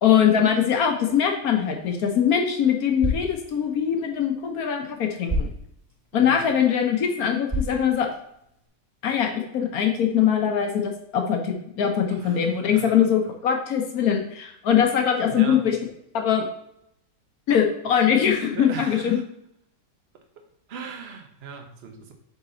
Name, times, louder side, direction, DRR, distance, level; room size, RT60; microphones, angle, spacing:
voice 1, 0.0-5.5 6.1-8.1 9.0-15.8 16.1-16.5 17.5-19.2, left 8 dB, 65° left, 3 dB, 1.2 m, -22 dB
sound 1, 1.8-8.7, equal, 10° right, 1.9 m, -34 dB
voice 2, 6.1-6.4 12.1-13.0 15.2-15.7 18.5-19.2 20.7-22.1, right 6 dB, 45° right, 5 dB, 1.0 m, -39 dB
7.8 x 4.1 x 3.8 m, 0.76 s
omnidirectional pair, 1.8 m